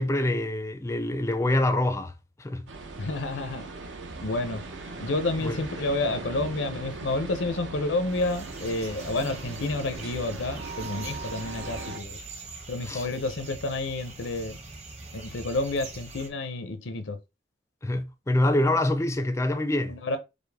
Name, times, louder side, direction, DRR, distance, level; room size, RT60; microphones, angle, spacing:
voice 1, 0.0-2.1 2.4-2.7 5.4-5.6 12.9-13.1 17.8-19.9, left 1 dB, 15° left, 0.4 m, -25 dB
sound 1, 2.7-12.0, right 3 dB, 75° right, 0.7 m, -39 dB
voice 2, 3.0-3.7 4.2-4.7 5.0-12.2 12.7-14.6 15.1-17.2 19.9-20.2, left 2 dB, 85° left, 0.7 m, -30 dB
sound 2, 8.1-16.3, right 3 dB, 35° right, 0.9 m, -43 dB
5.1 x 2.1 x 3.4 m
head